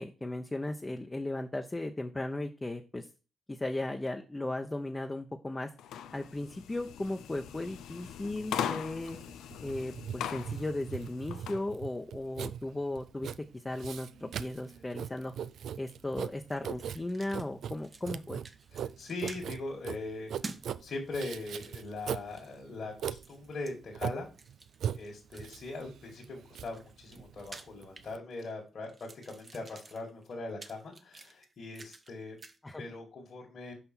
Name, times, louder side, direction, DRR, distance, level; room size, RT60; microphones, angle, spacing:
voice 1, 0.0-3.1 3.5-5.7 6.1-9.2 9.6-15.3 15.8-18.4 32.6-32.8, left 2 dB, 25° left, 4 dB, 0.9 m, -36 dB
sound 1, 5.8-11.6, left 9 dB, 75° left, 0.4 m, -40 dB
Writing, 9.0-28.2, right 8 dB, 70° right, 0.3 m, -40 dB
sound 2, 16.5-17.5 17.7-18.2 18.4-19.4 20.4-20.7 21.1-22.6 23.2-23.7 24.3-25.8 26.4-28.5 28.8-32.1 32.4-32.6, right 3 dB, 45° right, 0.9 m, -50 dB
voice 2, 18.7-24.3 24.9-32.4 32.8-33.7, left 2 dB, 55° left, -2 dB, 1.9 m, -41 dB
5.8 x 5.4 x 4.3 m, 0.32 s
hypercardioid pair, 40°, 0 cm